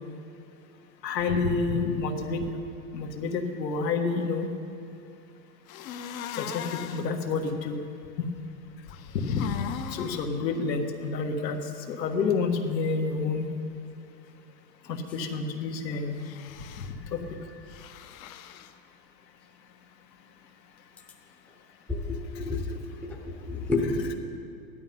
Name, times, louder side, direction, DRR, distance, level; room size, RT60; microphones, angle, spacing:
voice 1, 1.0-2.4 2.9-4.5 6.3-7.8 8.2-8.3 9.1-9.6 9.9-11.6 11.9-13.5 14.9-16.2 17.1-17.2, left 4 dB, 85° left, 4 dB, 1.8 m, -28 dB
sound 1, 5.7-7.1 8.9-10.3 16.2-16.9 17.7-18.7, left 9 dB, 55° left, 0.9 m, -39 dB
voice 2, 21.9-24.1, left 3 dB, 5° left, -1 dB, 0.6 m, -30 dB
15.5 x 12.0 x 5.6 m, 2.5 s
supercardioid pair, 155°, 49 cm